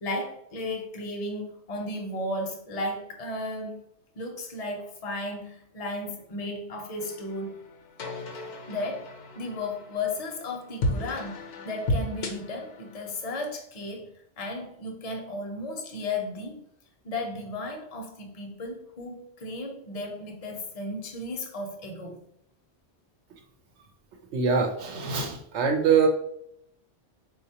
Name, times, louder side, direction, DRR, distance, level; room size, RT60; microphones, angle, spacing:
voice 1, 0.0-3.8 4.2-7.6 8.3-9.1 9.3-16.6 17.0-22.2, left 2 dB, 40° left, 1 dB, 0.6 m, -34 dB
sound 1, 7.0-13.5, left 1 dB, 70° left, 0.8 m, -34 dB
voice 2, 24.3-26.1, right 6 dB, 85° right, 2 dB, 0.9 m, -23 dB
3.8 x 2.3 x 2.8 m, 0.73 s
omnidirectional pair, 1.1 m